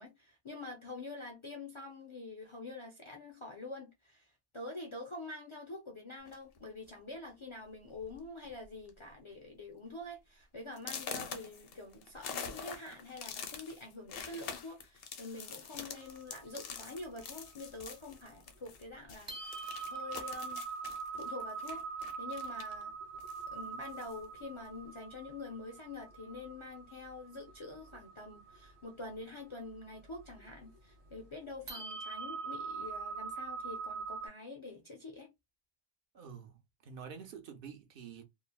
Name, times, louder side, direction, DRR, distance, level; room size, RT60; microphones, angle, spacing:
voice 1, 0.0-4.3 4.5-20.6 21.1-21.8 22.2-22.9 23.5-35.3, left 2 dB, 45° left, 0.4 m, -46 dB
sound 1, 6.2-6.6 7.4-7.5 7.9-8.1 8.4-8.9 9.3-9.4 9.9-10.0 10.8-18.8 19.1-22.8 23.2-24.2, left 6 dB, 70° left, 0.8 m, -45 dB
sound 2, 16.0-18.3 18.8-18.9 19.3-34.3, right 5 dB, 45° right, 0.3 m, -43 dB
voice 2, 36.1-38.2, right 6 dB, 65° right, 0.8 m, -48 dB
3.1 x 2.0 x 2.2 m
omnidirectional pair, 1.0 m